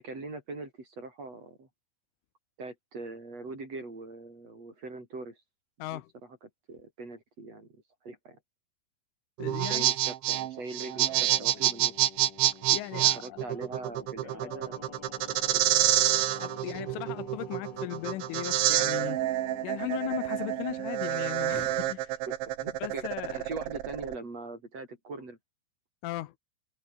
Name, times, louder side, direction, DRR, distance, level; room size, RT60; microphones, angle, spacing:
voice 1, 0.0-1.7 2.6-5.4 5.9-6.0 6.4-8.4 9.6-12.1 12.9-15.9 22.3-23.0 23.3-25.4, right 3 dB, 30° right, 7.5 m, -42 dB
voice 2, 5.8-6.1 9.4-9.8 12.7-13.4 16.4-19.2 19.6-22.1 22.8-23.4 26.0-26.3, left 17 dB, 80° left, 3.4 m, -37 dB
sound 1, 9.4-24.2, right 14 dB, 75° right, 3.7 m, -28 dB
Singing, 10.8-20.6, left 6 dB, 50° left, 1.2 m, -48 dB
omnidirectional pair, 5.6 m